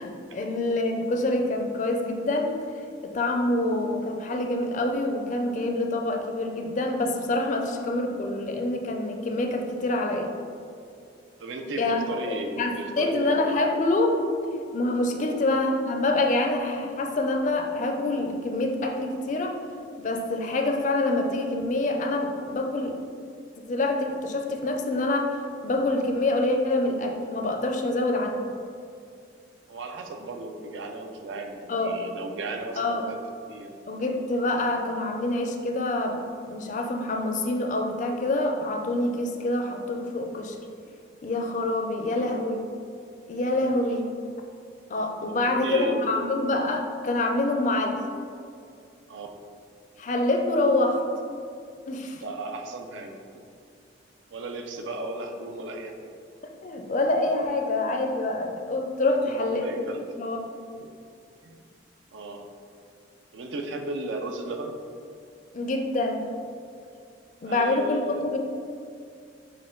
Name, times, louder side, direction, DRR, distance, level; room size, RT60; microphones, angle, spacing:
voice 1, 0.0-2.6 3.0-10.3 11.8-14.2 14.7-19.6 20.0-23.0 23.7-25.4 25.6-28.4 31.7-32.0 32.8-33.1 33.9-36.2 36.5-40.6 41.2-42.6 43.3-44.1 44.9-48.0 50.0-51.0 51.9-52.2 56.6-60.4 65.5-66.3 67.4-68.4, left 2 dB, 40° left, 3 dB, 0.4 m, -26 dB
voice 2, 3.4-3.8 11.4-13.4 15.2-15.5 29.7-33.2 33.5-33.7 42.0-42.4 45.3-46.2 49.1-49.3 52.1-53.5 54.3-56.1 59.1-60.1 60.8-60.9 61.4-61.6 62.1-62.5 63.3-64.8 67.4-68.3, right 2 dB, 85° right, 4 dB, 0.4 m, -36 dB
6.3 x 2.2 x 3.7 m, 2.4 s
head